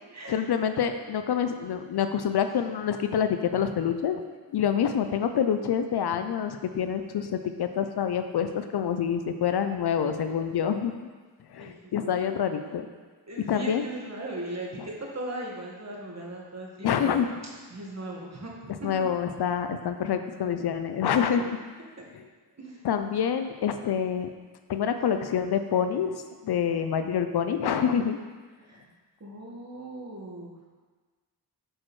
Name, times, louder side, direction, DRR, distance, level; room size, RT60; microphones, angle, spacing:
voice 1, 0.3-4.2 4.5-10.9 11.5-12.9 13.5-13.8 16.8-17.3 18.8-21.6 22.1-22.2 22.8-24.3 24.7-28.2, left 8 dB, 65° left, 8 dB, 0.5 m, -27 dB
voice 2, 3.6-3.9 11.6-12.3 13.3-17.2 17.7-18.7 22.6-22.8 28.6-28.9 29.2-30.6, right 1 dB, 40° right, -2 dB, 1.5 m, -38 dB
6.3 x 6.2 x 3.1 m, 1.4 s
cardioid pair, 60°, 42 cm